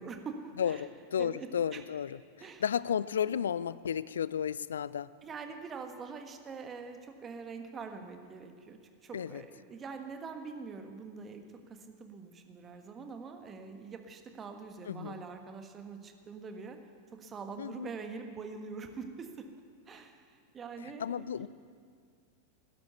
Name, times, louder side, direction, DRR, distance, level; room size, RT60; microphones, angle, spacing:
voice 1, 0.0-0.9 1.2-1.8 2.4-2.6 5.2-16.8 17.1-19.5 19.9-21.5, right 5 dB, 25° right, 6 dB, 1.5 m, -44 dB
voice 2, 0.6-2.2 2.6-5.1 9.1-9.4 14.9-15.2 17.6-17.9 21.0-21.5, left 8 dB, 65° left, 19 dB, 0.4 m, -33 dB
16.5 x 11.5 x 6.9 m, 2.1 s
figure-of-eight pair, 90°, 0 cm